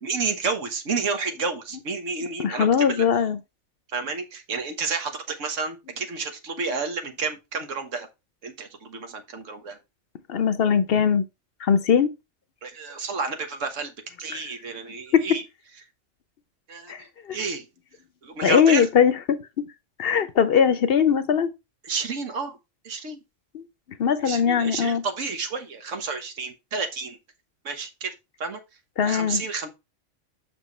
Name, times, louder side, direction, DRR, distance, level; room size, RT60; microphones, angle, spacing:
voice 1, 0.0-3.0 3.9-8.1 8.4-9.8 12.6-13.9 14.2-15.4 16.7-16.9 17.3-17.7 18.2-18.9 21.8-22.6 22.8-23.2 24.2-27.2 27.6-28.1 28.4-28.6 29.0-29.7, right 4 dB, 85° right, 1.6 m, -30 dB
voice 2, 2.4-3.4 10.3-11.2 11.6-12.1 15.1-15.2 16.9-17.0 18.4-19.6 20.0-21.5 23.5-23.6 24.0-25.0 29.0-29.4, left 7 dB, 60° left, 0.8 m, -20 dB
6.1 x 6.0 x 3.1 m
omnidirectional pair, 1.3 m